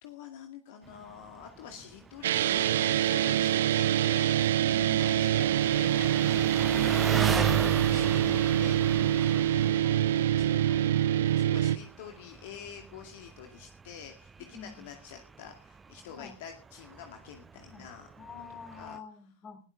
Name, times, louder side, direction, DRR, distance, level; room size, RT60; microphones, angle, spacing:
voice 1, 0.0-10.8 11.2-18.1 18.8-19.0, left 8 dB, 50° left, 4 dB, 2.2 m, -47 dB
voice 2, 0.9-1.2 4.6-5.1 7.6-7.9 14.5-14.9 16.1-16.4 17.7-17.9 18.2-19.6, left 5 dB, 25° left, 6 dB, 3.9 m, -48 dB
Engine, 0.9-19.0, right 5 dB, 15° right, 0.7 m, -39 dB
sound 1, 2.2-11.8, right 11 dB, 60° right, 0.7 m, -25 dB
20.0 x 13.5 x 3.9 m, 0.39 s
figure-of-eight pair, 90°, 0 cm